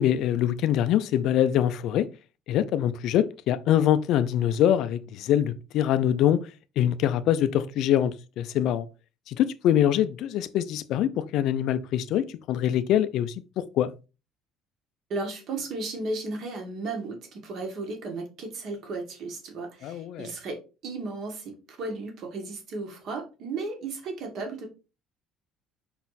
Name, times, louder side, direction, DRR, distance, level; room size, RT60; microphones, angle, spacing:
voice 1, 0.0-2.1 2.5-6.4 6.8-8.9 9.3-13.9 19.8-20.3, left 11 dB, 50° left, 0.5 m, -24 dB
voice 2, 15.1-20.6 20.8-24.7, right 3 dB, 45° right, 1.8 m, -34 dB
5.6 x 4.2 x 4.1 m
cardioid pair, 180°, 0 cm